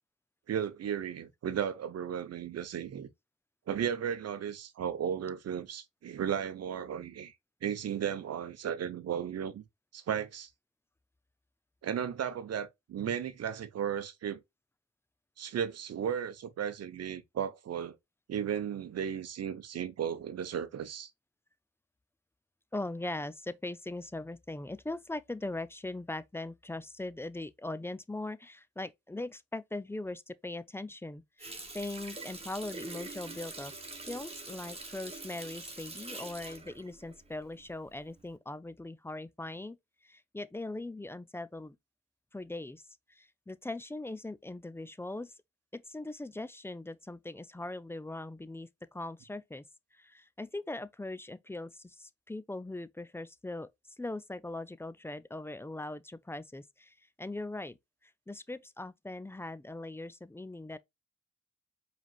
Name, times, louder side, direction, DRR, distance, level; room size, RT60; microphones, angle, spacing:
voice 1, 0.5-3.1 3.7-7.3 7.6-9.6 9.9-10.5 11.8-14.4 15.4-18.0 18.3-21.1, right 8 dB, 55° right, 0.8 m, -35 dB
voice 2, 22.7-33.7 34.0-39.8 40.0-41.8 42.3-42.8 43.1-45.3 45.7-49.6 49.9-53.7 54.0-57.8 58.0-60.8, left 2 dB, 10° left, 0.4 m, -40 dB
Water tap faucet, 31.4-37.8 38.2-38.3, right 2 dB, 20° right, 1.4 m, -44 dB
4.8 x 3.4 x 2.4 m
hypercardioid pair, 45°, 30 cm